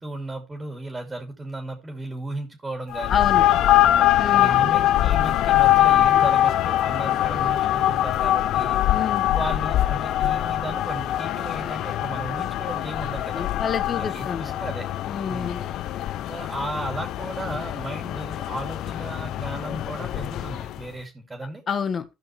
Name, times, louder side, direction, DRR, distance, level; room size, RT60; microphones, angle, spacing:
voice 1, 0.0-3.3 4.4-8.8 9.3-13.5 13.9-14.9 15.3-15.7 16.3-21.6, right 1 dB, 20° right, 2.6 m, -35 dB
sound 1, 2.9-20.8, left 13 dB, 65° left, 0.5 m, -23 dB
voice 2, 3.1-3.4 4.2-4.5 8.9-9.3 13.3-14.6 15.1-15.6 21.7-22.0, left 6 dB, 45° left, 1.4 m, -29 dB
15.0 x 5.9 x 3.3 m
supercardioid pair, 80°, 0 cm